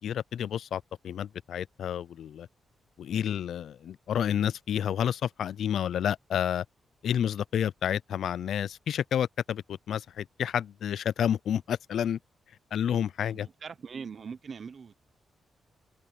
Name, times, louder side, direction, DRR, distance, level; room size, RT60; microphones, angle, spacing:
voice 1, 0.0-2.5 3.0-6.6 7.0-12.2 12.7-13.5, left 9 dB, 75° left, 0.3 m, -30 dB
voice 2, 13.3-14.9, right 6 dB, 50° right, 0.9 m, -41 dB
cardioid pair, 110°, 0 cm